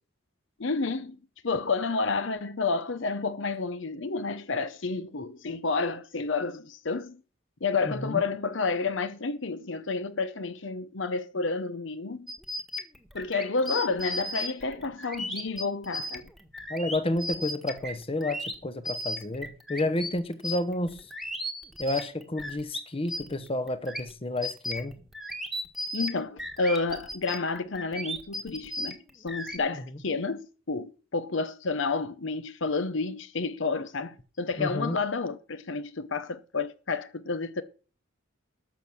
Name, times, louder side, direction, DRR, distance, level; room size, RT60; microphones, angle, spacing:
voice 1, 0.6-1.2 1.4-7.2 7.6-12.3 13.1-16.2 25.9-37.6, left 4 dB, 65° left, 0.8 m, -30 dB
voice 2, 7.8-8.2 16.7-21.1 21.8-25.0 29.7-29.8 34.6-35.0, left 1 dB, 30° left, 1.0 m, -30 dB
sound 1, 12.3-22.8 23.1-29.6, left 1 dB, ahead, 1.4 m, -36 dB
12.5 x 6.9 x 6.2 m
head